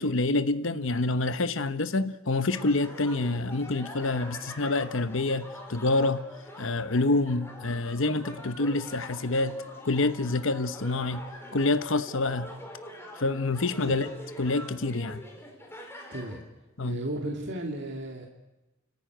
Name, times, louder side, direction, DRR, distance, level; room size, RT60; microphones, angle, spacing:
voice 1, 0.0-6.2 6.6-9.6 9.8-11.2 11.5-12.5 13.2-14.0 14.4-15.2 16.8-17.0, left 2 dB, 65° left, 1.0 m, -27 dB
sound 1, 2.5-16.4, left 1 dB, 10° left, 4.2 m, -44 dB
voice 2, 16.1-16.4 16.8-18.3, right 1 dB, 55° right, 2.7 m, -35 dB
30.0 x 14.5 x 9.2 m
head